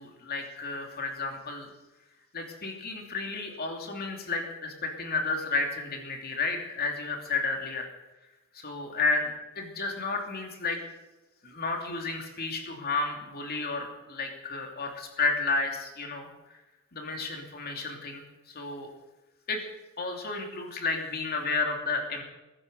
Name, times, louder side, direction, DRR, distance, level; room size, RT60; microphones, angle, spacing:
voice 1, 0.0-1.7 2.3-7.9 8.5-10.8 11.4-16.3 16.9-18.9 19.5-19.6 20.0-22.2, left 3 dB, 45° left, 3 dB, 2.9 m, -32 dB
21.5 x 9.8 x 6.8 m, 1.1 s
head